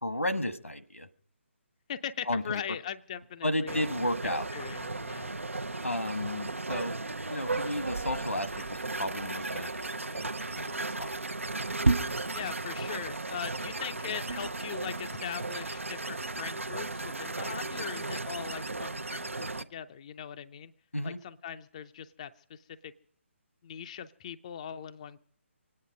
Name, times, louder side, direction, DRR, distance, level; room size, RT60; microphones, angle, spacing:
voice 1, 0.0-1.1 2.3-2.6 3.4-4.5 5.8-6.9 7.3-10.3 10.6-11.2 20.9-21.2, left 1 dB, 85° left, 11 dB, 1.4 m, -33 dB
voice 2, 1.9-3.8 4.5-5.3 12.3-20.7 21.0-22.9 23.6-25.2, left 8 dB, 30° left, 8 dB, 0.5 m, -40 dB
sound 1, 3.7-19.6, right 2 dB, 75° right, 0.8 m, -34 dB
24.5 x 9.6 x 5.2 m, 0.63 s
figure-of-eight pair, 140°, 7 cm